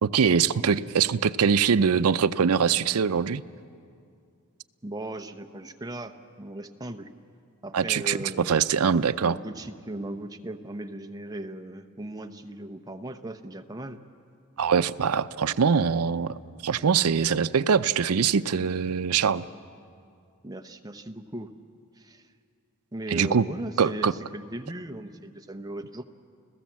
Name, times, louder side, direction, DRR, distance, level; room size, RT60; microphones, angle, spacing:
voice 1, 0.0-3.4 7.7-9.4 14.6-19.4 23.1-23.5 23.8-24.1, right 6 dB, 80° right, 14 dB, 0.5 m, -23 dB
voice 2, 4.8-6.1 6.4-7.1 7.6-8.6 9.2-14.0 20.4-21.5 22.0-22.3 22.9-26.0, right 1 dB, 15° right, 7 dB, 0.8 m, -37 dB
29.5 x 16.0 x 7.4 m, 2.3 s
head